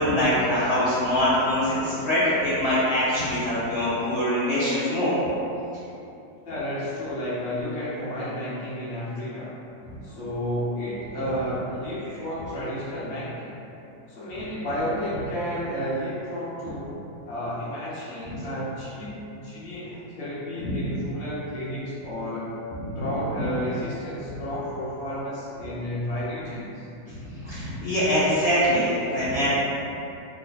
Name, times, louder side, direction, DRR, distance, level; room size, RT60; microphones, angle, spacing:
voice 1, 0.0-5.2 20.6-20.7 22.8-23.0 27.1-29.5, equal, 85° left, -11 dB, 0.6 m, -23 dB
voice 2, 6.4-9.6 10.0-13.6 14.1-16.9 17.3-22.5 22.9-26.9, equal, 50° left, -9 dB, 0.9 m, -32 dB
3.1 x 2.1 x 3.9 m, 2.8 s
omnidirectional pair, 2.0 m